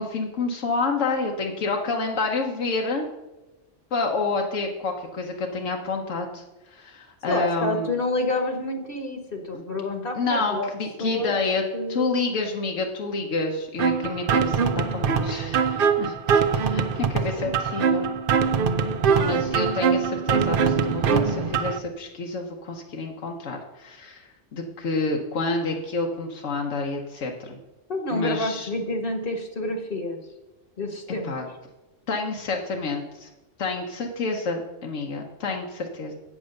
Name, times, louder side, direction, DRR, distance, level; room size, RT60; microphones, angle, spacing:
voice 1, 0.0-3.1 3.9-7.9 10.1-11.6 11.9-18.1 19.2-27.6 28.1-28.7 31.2-31.5 32.1-33.3 33.6-36.1, left 3 dB, 90° left, 1 dB, 1.3 m, -29 dB
voice 2, 7.3-10.7 11.0-11.4 11.7-12.0 17.4-17.5 27.9-30.2 30.8-31.3, left 1 dB, 50° left, 4 dB, 1.1 m, -28 dB
sound 1, 13.8-21.8, right 6 dB, 55° right, 0.7 m, -23 dB
8.2 x 6.1 x 6.4 m, 1.0 s
omnidirectional pair, 1.2 m